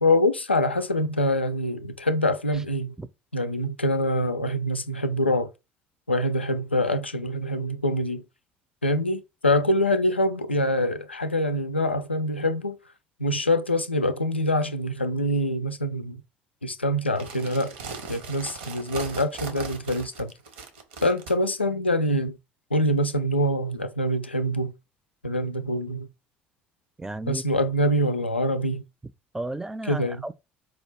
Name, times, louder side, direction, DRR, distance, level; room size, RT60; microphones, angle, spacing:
voice 1, 0.0-3.0 3.3-5.5 6.1-8.2 8.8-12.8 13.2-16.2 16.6-17.7 18.1-20.3 21.0-22.4 22.7-24.7 25.2-26.1 27.3-28.8 29.9-30.2, left 1 dB, 90° left, 0.3 m, -25 dB
sound 1, 17.1-21.3, right 5 dB, 70° right, 0.8 m, -38 dB
voice 2, 27.0-27.4 29.3-30.3, right 2 dB, 10° right, 0.4 m, -33 dB
4.6 x 2.3 x 3.2 m
figure-of-eight pair, 60°, 6 cm